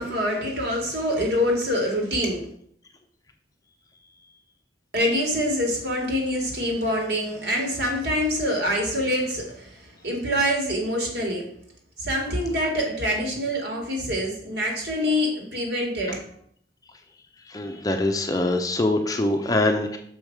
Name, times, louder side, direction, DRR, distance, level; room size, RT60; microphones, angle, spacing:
voice 1, 0.0-2.4 4.9-11.4 12.0-16.2, equal, 65° right, 1 dB, 2.1 m, -25 dB
voice 2, 17.5-20.0, left 2 dB, 20° left, 4 dB, 0.5 m, -24 dB
6.3 x 5.3 x 4.7 m, 0.65 s
head